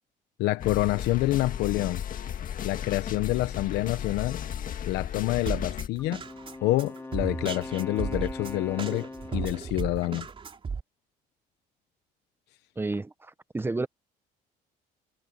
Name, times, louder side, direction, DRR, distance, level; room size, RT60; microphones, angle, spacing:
voice 1, 0.4-2.0 2.6-4.4 4.9-6.2 6.6-10.3, left 17 dB, 85° left, 0.9 m, -27 dB
sound 1, 0.6-5.9, left 9 dB, 55° left, 1.9 m, -34 dB
Drum kit, 5.5-10.8, right 5 dB, 30° right, 3.6 m, -35 dB
Wind instrument woodwind instrument, 6.0-9.8, left 2 dB, 15° left, 2.3 m, -41 dB
voice 2, 12.8-13.9, right 3 dB, 15° right, 1.0 m, -31 dB
cardioid pair, 110°, 17 cm